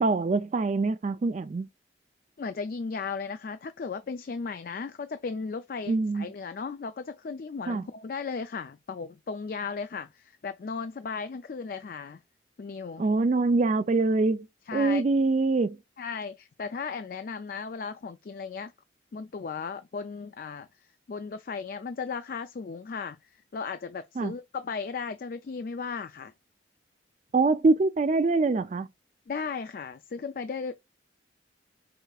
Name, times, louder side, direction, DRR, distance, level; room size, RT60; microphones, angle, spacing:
voice 1, 0.0-1.7 5.9-6.3 7.7-7.8 13.0-14.5 14.7-15.8 24.2-24.3 27.3-28.9, right 3 dB, 40° right, 0.3 m, -24 dB
voice 2, 2.4-12.2 12.6-13.0 14.7-15.0 16.0-18.7 19.1-20.7 21.1-26.3 29.3-30.8, left 5 dB, 50° left, 0.3 m, -36 dB
4.9 x 4.5 x 2.3 m
head